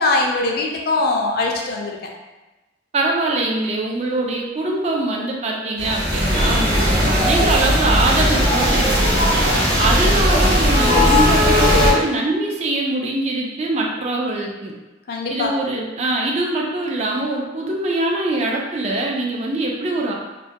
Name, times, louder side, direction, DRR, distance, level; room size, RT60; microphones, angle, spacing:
voice 1, 0.0-2.0 15.1-15.6, left 2 dB, 50° left, 0 dB, 0.3 m, -21 dB
voice 2, 2.9-9.1 9.7-14.7 15.3-20.1, right 2 dB, 35° right, -1 dB, 0.3 m, -23 dB
sound 1, 5.8-11.9, equal, 55° right, 0.9 m, -17 dB
2.2 x 2.2 x 2.6 m, 1.1 s
head